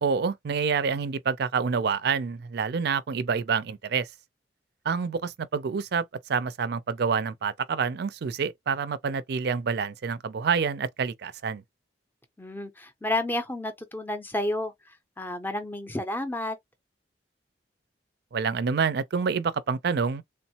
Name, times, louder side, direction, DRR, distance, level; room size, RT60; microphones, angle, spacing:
voice 1, 0.0-4.1 4.9-11.6 18.3-20.2, right 5 dB, 65° right, 0.4 m, -27 dB
voice 2, 12.4-16.6, left 1 dB, 10° left, 0.5 m, -31 dB
3.4 x 2.0 x 2.8 m
head